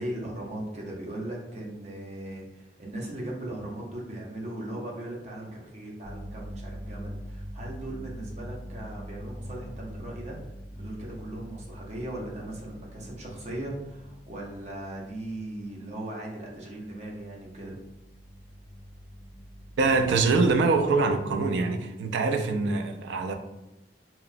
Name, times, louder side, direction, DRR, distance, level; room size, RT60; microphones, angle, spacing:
voice 1, 0.0-10.4 10.7-17.8, right 1 dB, 40° right, -2 dB, 0.6 m, -38 dB
sound 1, 6.0-15.7 16.6-20.5, equal, 15° left, 0.4 m, -43 dB
voice 2, 19.8-23.3, right 3 dB, 90° right, 6 dB, 0.3 m, -24 dB
2.8 x 2.1 x 2.5 m, 0.92 s
head